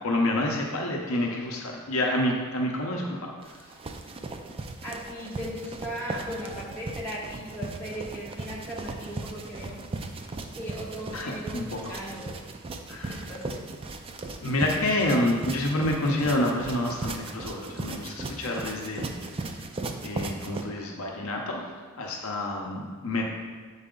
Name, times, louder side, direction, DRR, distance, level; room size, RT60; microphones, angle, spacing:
voice 1, 0.0-3.7 11.1-11.9 12.9-13.3 14.4-19.1 20.0-21.7 21.9-23.3, left 1 dB, 65° left, 0 dB, 0.7 m, -28 dB
sound 1, 3.4-20.6, right 3 dB, 25° right, 0.4 m, -37 dB
voice 2, 4.8-9.8 10.5-12.3 13.1-13.6, equal, 10° left, -7 dB, 1.4 m, -37 dB
7.7 x 4.0 x 3.7 m, 1.5 s
head